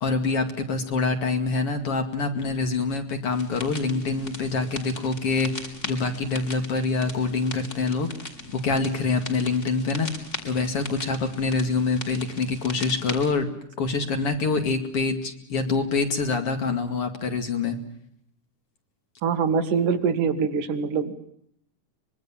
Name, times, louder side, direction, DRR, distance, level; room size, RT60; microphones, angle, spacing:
voice 1, 0.0-8.1 8.5-10.1 10.4-13.5 13.8-17.8, left 4 dB, 50° left, 6 dB, 3.1 m, -25 dB
sound 1, 3.3-13.3, left 2 dB, 25° left, 3.2 m, -39 dB
voice 2, 19.2-21.1, right 6 dB, 85° right, 7 dB, 3.5 m, -24 dB
24.5 x 22.5 x 7.3 m, 0.71 s
omnidirectional pair, 3.6 m